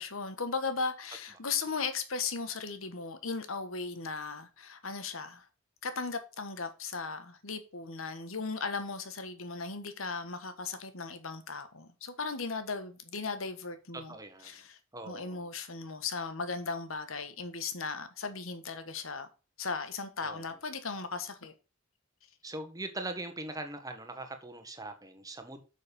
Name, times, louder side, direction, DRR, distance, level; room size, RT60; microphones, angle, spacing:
voice 1, 0.0-5.5 5.8-14.1 14.4-14.8 15.1-19.3 19.6-21.5, left 4 dB, 85° left, 1.4 m, -37 dB
voice 2, 14.1-14.5 14.9-15.5 20.2-20.4 22.4-25.6, right 2 dB, 15° right, 1.5 m, -41 dB
6.6 x 6.5 x 6.9 m
head